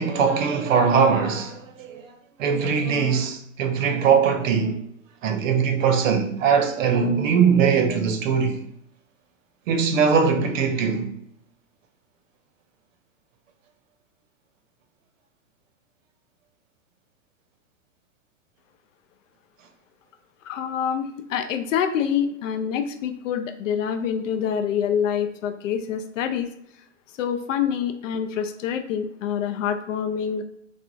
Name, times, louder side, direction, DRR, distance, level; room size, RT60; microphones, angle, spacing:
voice 1, 0.0-2.1 2.4-4.8 5.2-8.6 9.7-11.1, right 6 dB, 75° right, 0.7 m, -21 dB
voice 2, 20.5-26.5 27.2-30.4, left 8 dB, 75° left, 0.5 m, -26 dB
3.3 x 2.1 x 2.5 m
hypercardioid pair, 145°, 39 cm